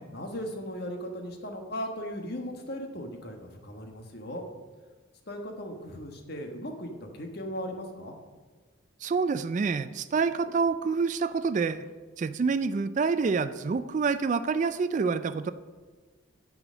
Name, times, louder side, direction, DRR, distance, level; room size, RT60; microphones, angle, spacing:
voice 1, 0.1-4.4 5.3-8.1, equal, 50° left, 3 dB, 1.3 m, -37 dB
voice 2, 9.0-11.8 12.2-15.5, right 5 dB, 35° right, 12 dB, 0.3 m, -27 dB
9.8 x 5.0 x 7.3 m, 1.4 s
head